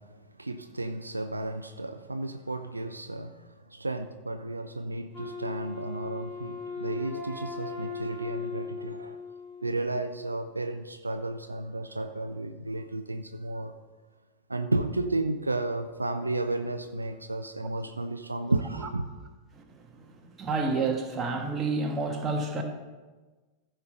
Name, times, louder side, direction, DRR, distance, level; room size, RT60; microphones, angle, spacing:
voice 1, 0.0-9.2 9.6-13.7 14.5-19.1, right 2 dB, 80° right, 9 dB, 0.4 m, -33 dB
Wind instrument woodwind instrument, 5.1-10.1, left 4 dB, 25° left, 3.0 m, -38 dB
voice 2, 19.5-22.6, right 3 dB, 25° right, 3 dB, 1.4 m, -30 dB
14.5 x 5.8 x 3.9 m, 1.3 s
figure-of-eight pair, 90°, 0 cm